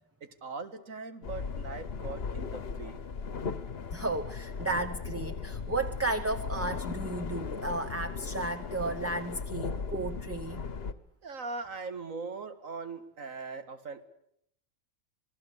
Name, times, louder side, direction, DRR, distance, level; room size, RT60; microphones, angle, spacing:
voice 1, 0.2-3.0 11.2-14.0, right 4 dB, 90° right, 10 dB, 2.2 m, -40 dB
sound 1, 1.2-10.9, left 5 dB, 50° left, 1.3 m, -37 dB
voice 2, 3.9-10.6, right 2 dB, 15° right, 7 dB, 0.8 m, -33 dB
27.5 x 19.5 x 8.3 m, 0.74 s
omnidirectional pair, 1.3 m